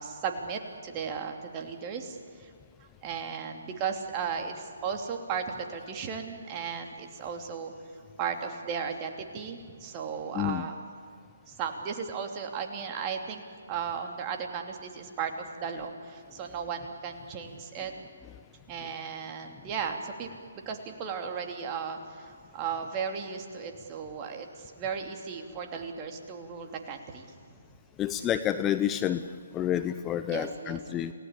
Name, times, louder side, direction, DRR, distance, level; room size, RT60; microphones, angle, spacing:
voice 1, 0.0-2.5 3.0-7.7 8.2-10.7 11.5-13.4 13.7-17.9 18.7-20.3 20.7-27.3 30.3-30.8, right 6 dB, 25° right, 3 dB, 2.9 m, -35 dB
voice 2, 10.3-10.7 28.0-29.2 29.5-31.1, left 10 dB, 20° left, 11 dB, 0.7 m, -29 dB
29.0 x 18.5 x 8.5 m, 2.2 s
figure-of-eight pair, 140°, 0 cm